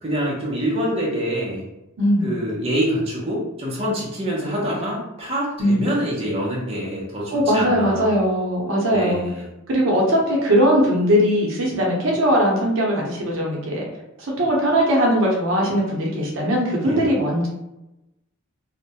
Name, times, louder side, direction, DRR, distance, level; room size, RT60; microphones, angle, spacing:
voice 1, 0.0-1.7 2.2-8.2 8.9-9.5 16.7-17.1, equal, 30° right, -5 dB, 0.6 m, -26 dB
voice 2, 2.0-2.3 5.6-5.9 7.3-9.2 9.7-13.8 14.2-17.5, equal, 65° right, -2 dB, 0.6 m, -20 dB
2.2 x 2.1 x 2.8 m, 0.92 s
head